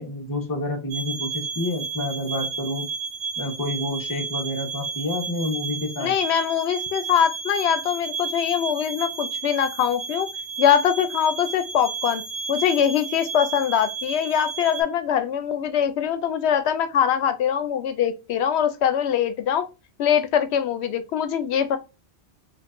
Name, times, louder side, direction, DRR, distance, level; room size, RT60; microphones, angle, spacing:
voice 1, 0.0-2.9 3.4-6.1, left 1 dB, 20° left, 0.8 m, -29 dB
sound 1, 0.9-14.8, right 5 dB, 50° right, 1.4 m, -32 dB
voice 2, 6.0-10.3 10.6-12.2 12.5-19.7 20.0-21.8, left 8 dB, 80° left, 0.8 m, -22 dB
4.5 x 2.6 x 2.5 m
omnidirectional pair, 1.1 m